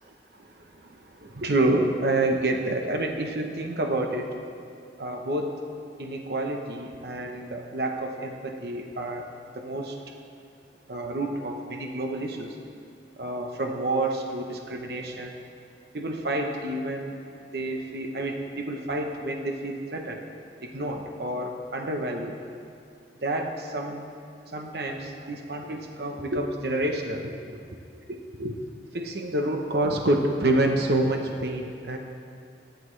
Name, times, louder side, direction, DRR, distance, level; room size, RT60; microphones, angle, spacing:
voice 1, 0.3-4.3 5.0-5.5 6.0-9.3 9.5-10.0 10.9-12.6 13.2-15.3 15.9-17.2 17.5-20.2 20.6-22.4 23.2-24.0 24.5-27.6 28.1-28.5 28.9-32.0, right 1 dB, 65° right, 2 dB, 0.9 m, -28 dB
26.5 x 10.5 x 3.3 m, 2.5 s
head